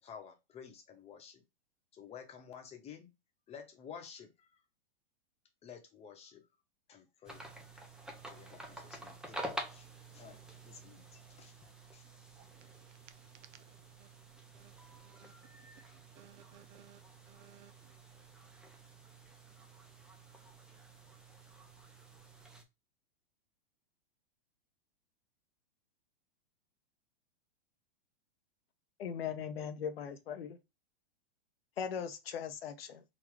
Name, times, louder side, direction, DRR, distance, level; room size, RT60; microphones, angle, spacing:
voice 1, 0.0-1.4 1.9-3.1 3.5-4.6 5.6-6.5 6.9-7.4 7.7-7.9 8.3-9.9 10.1-12.1, left 7 dB, 20° left, 1.0 m, -52 dB
sound 1, 7.2-22.6, right 1 dB, ahead, 0.6 m, -49 dB
voice 2, 16.1-17.0 17.3-17.9, right 9 dB, 50° right, 0.6 m, -60 dB
voice 3, 29.0-30.6 31.8-33.0, left 7 dB, 80° left, 0.9 m, -39 dB
4.0 x 2.3 x 4.6 m
hypercardioid pair, 130°, 29 cm